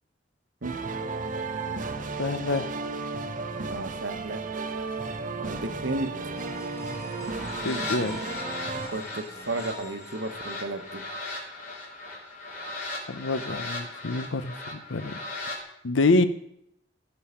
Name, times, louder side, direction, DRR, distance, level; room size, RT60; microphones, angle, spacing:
sound 1, 0.6-8.9, right 3 dB, 45° right, 0.8 m, -34 dB
voice 1, 2.2-2.7 7.6-8.2 13.1-15.1 15.8-16.3, left 2 dB, 85° left, 13 dB, 0.7 m, -26 dB
voice 2, 3.7-4.4 5.5-6.4 8.9-11.0, right 2 dB, 70° right, 8 dB, 1.1 m, -33 dB
sound 2, 6.4-11.0, left 1 dB, 15° left, 1.6 m, -45 dB
sound 3, 7.1-15.6, left 2 dB, 50° left, 3.2 m, -37 dB
15.0 x 5.5 x 5.6 m, 0.76 s
head